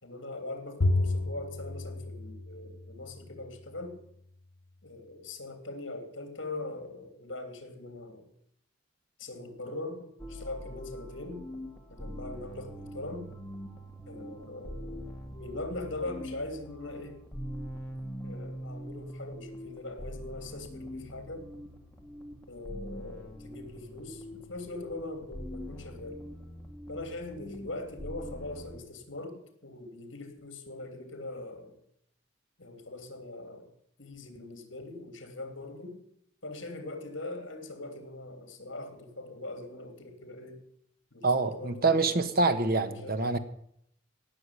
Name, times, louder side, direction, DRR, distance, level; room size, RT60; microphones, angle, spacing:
voice 1, 0.0-4.0 4.8-8.2 9.2-11.4 11.9-13.3 14.1-15.0 15.4-17.2 18.2-21.5 22.5-26.2 26.9-31.8 32.6-33.7 34.0-36.0 36.4-40.6 41.1-43.2, left 2 dB, 65° left, 7 dB, 3.1 m, -41 dB
Bowed string instrument, 0.8-3.3, left 2 dB, 85° left, 1.0 m, -31 dB
sound 1, 10.2-28.8, equal, 10° left, 2.0 m, -43 dB
voice 2, 41.2-43.4, right 3 dB, 50° right, 10 dB, 1.2 m, -26 dB
17.5 x 7.0 x 9.8 m, 0.69 s
head